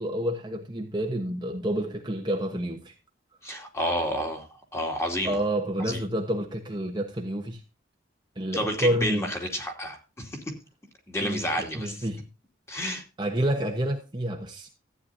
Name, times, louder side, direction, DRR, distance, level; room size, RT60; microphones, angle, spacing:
voice 1, 0.0-2.9 5.2-7.6 8.3-9.3 11.2-12.2 13.2-14.7, right 1 dB, 25° right, 1.2 m, -29 dB
voice 2, 3.4-5.4 5.8-6.0 8.5-10.4 11.1-12.0 12.7-13.0, equal, 15° left, 2.7 m, -30 dB
14.5 x 9.5 x 2.7 m
head